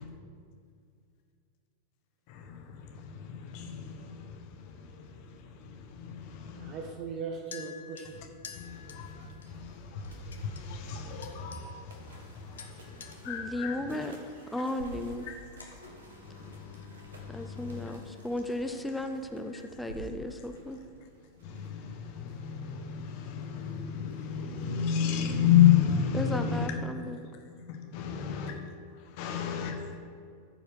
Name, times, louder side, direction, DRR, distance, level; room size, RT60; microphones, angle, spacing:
voice 1, 2.3-6.8 8.1-8.3 8.5-14.0 14.6-14.7 15.2-17.9 19.5-19.7 21.2-30.0, left 9 dB, 45° left, 4 dB, 1.2 m, -32 dB
voice 2, 6.5-8.3 13.8-14.1, right 5 dB, 35° right, 1 dB, 1.0 m, -40 dB
sound 1, 7.5-9.5 10.0-10.6 11.2-11.8 12.1-12.3 12.6-13.1, left 7 dB, 65° left, 0.8 m, -48 dB
sound 2, 8.4-25.3, right 2 dB, 65° right, 1.5 m, -59 dB
voice 3, 13.2-14.1 14.5-15.3 17.3-20.8 26.1-27.2, left 1 dB, 5° left, 6 dB, 0.6 m, -35 dB
sound 3, 14.7-20.0, left 1 dB, 80° left, 1.3 m, -50 dB
14.0 x 4.9 x 4.7 m, 2.3 s
figure-of-eight pair, 90°, 0 cm